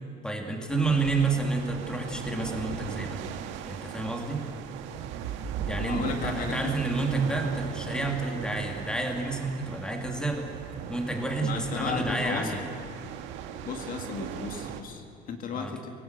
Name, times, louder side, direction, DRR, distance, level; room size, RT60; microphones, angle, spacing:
voice 1, 0.2-3.2 3.7-4.4 5.7-10.5 10.9-12.6 15.5-15.7, right 3 dB, 5° left, 2 dB, 2.4 m, -29 dB
sound 1, 0.7-14.8, right 8 dB, 85° right, 1.7 m, -38 dB
voice 2, 5.8-6.7 11.4-12.5 13.6-15.9, left 6 dB, 45° left, 5 dB, 1.8 m, -34 dB
24.5 x 18.0 x 8.0 m, 2.3 s
cardioid pair, 155°, 19 cm